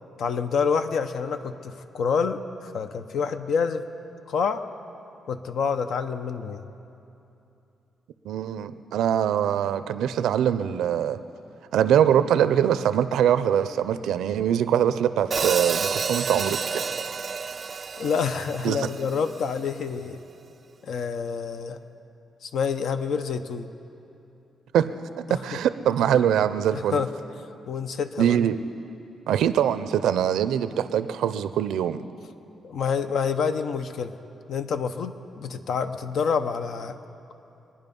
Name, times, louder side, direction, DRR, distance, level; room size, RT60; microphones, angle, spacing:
voice 1, 0.2-3.8 4.3-4.6 5.3-6.7 18.0-20.2 20.8-21.8 22.4-23.7 25.3-25.6 26.7-27.1 27.7-28.4 32.6-34.1 34.5-37.0, left 6 dB, 70° left, 9 dB, 0.8 m, -27 dB
voice 2, 8.2-11.2 11.7-16.6 18.6-18.8 24.7-24.9 25.2-27.0 28.2-28.6 29.3-32.0, right 9 dB, 90° right, 12 dB, 0.6 m, -23 dB
Hi-hat, 15.3-19.5, right 5 dB, 45° right, 0.3 m, -30 dB
25.0 x 10.0 x 5.4 m, 2.8 s
cardioid pair, 95°, 0 cm